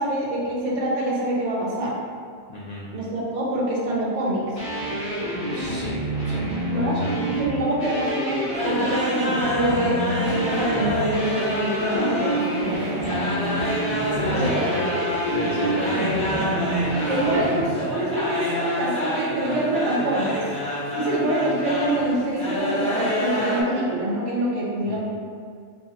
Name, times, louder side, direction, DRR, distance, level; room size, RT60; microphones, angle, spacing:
voice 1, 0.0-2.0 2.9-4.4 6.7-13.3 14.3-14.7 17.1-20.4 20.9-25.0, right 1 dB, 70° right, -5 dB, 1.1 m, -25 dB
voice 2, 2.5-2.9 5.5-7.2 13.9-15.0 15.3-16.8 17.2-17.5 24.9-25.0, left 1 dB, 80° left, -5 dB, 0.3 m, -33 dB
sound 1, 4.6-17.6, right 1 dB, 25° left, 1.6 m, -28 dB
sound 2, 8.5-23.6, left 1 dB, 5° left, 0.7 m, -27 dB
4.0 x 2.7 x 2.8 m, 2.1 s
omnidirectional pair, 1.3 m